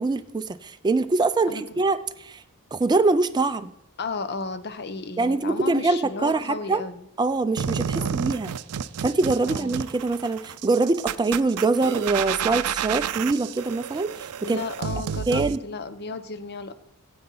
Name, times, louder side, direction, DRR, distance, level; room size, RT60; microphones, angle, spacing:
voice 1, 0.0-2.4 2.7-3.7 5.2-6.8 7.2-8.5 9.0-14.6 15.3-15.6, right 3 dB, 20° right, 9 dB, 0.4 m, -24 dB
voice 2, 1.5-1.8 4.0-7.1 8.0-8.1 9.5-9.8 14.4-16.7, left 4 dB, 50° left, 11 dB, 0.7 m, -34 dB
sound 1, 7.6-15.6, right 7 dB, 85° right, 0.4 m, -30 dB
15.5 x 7.8 x 3.9 m, 0.82 s
head